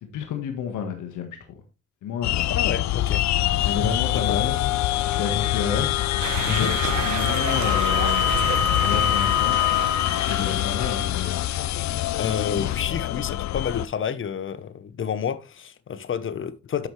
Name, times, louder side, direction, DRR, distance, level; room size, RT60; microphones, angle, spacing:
voice 1, 0.1-1.6 2.0-2.5 3.6-4.6 5.1-6.2 6.5-11.4, left 7 dB, 80° left, 1.6 m, -30 dB
sound 1, 2.2-13.9, left 13 dB, 65° left, 0.5 m, -24 dB
voice 2, 2.5-3.2 4.3-4.4 6.5-6.7 12.2-16.9, left 7 dB, 40° left, 0.9 m, -29 dB
sound 2, 6.2-11.6, right 9 dB, 75° right, 1.1 m, -32 dB
9.5 x 6.2 x 3.2 m
cardioid pair, 90°, 30 cm